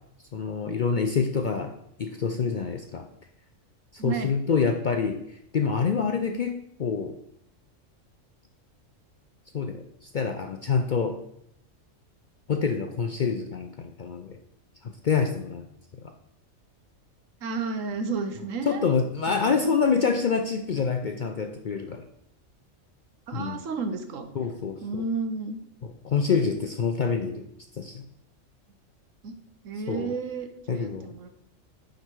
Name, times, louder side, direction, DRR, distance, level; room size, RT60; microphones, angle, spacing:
voice 1, 0.3-1.7 2.0-3.1 4.0-5.2 5.5-7.2 9.5-11.2 12.5-14.4 15.0-15.7 18.7-22.0 23.3-23.6 24.4-25.0 25.8-27.5 27.8-28.0 29.9-30.1 30.7-31.1, left 5 dB, 55° left, 5 dB, 0.5 m, -26 dB
voice 2, 4.0-4.3 17.4-18.8 19.3-19.7 23.3-24.3 24.8-25.6 29.2-29.3 29.6-31.3, right 4 dB, 80° right, 7 dB, 1.2 m, -32 dB
9.8 x 4.0 x 4.5 m, 0.75 s
omnidirectional pair, 1.4 m